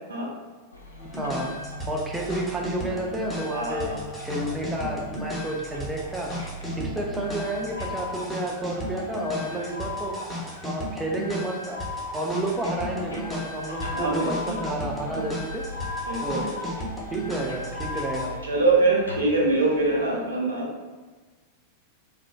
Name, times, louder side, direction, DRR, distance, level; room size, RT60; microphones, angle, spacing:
sound 1, 0.7-20.2, equal, 80° left, 0.4 m, -42 dB
sound 2, 1.0-18.3, left 1 dB, 15° left, 0.8 m, -34 dB
voice 1, 1.2-1.5 1.9-6.3 6.8-10.1 10.6-11.8 12.1-15.6 16.2-16.5 17.1-18.3, right 1 dB, 10° right, -1 dB, 0.4 m, -30 dB
voice 2, 3.5-4.0 13.9-14.6 16.1-16.5 18.4-20.7, right 2 dB, 75° right, -2 dB, 0.6 m, -24 dB
3.2 x 2.2 x 2.2 m, 1.3 s
figure-of-eight pair, 90°, 0 cm